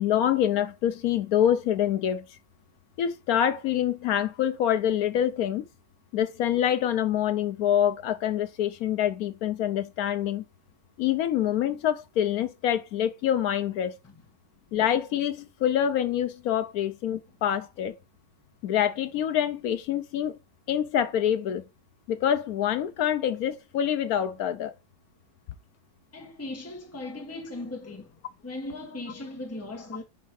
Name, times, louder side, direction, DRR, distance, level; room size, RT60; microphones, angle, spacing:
voice 1, 0.0-2.2 3.0-5.7 6.1-10.5 11.0-13.9 14.7-17.9 18.6-20.4 20.7-21.6 22.1-24.7, left 10 dB, 70° left, 1.0 m, -26 dB
voice 2, 26.1-28.1 28.4-30.0, left 2 dB, 10° left, 1.4 m, -38 dB
5.3 x 4.6 x 4.7 m
omnidirectional pair, 1.7 m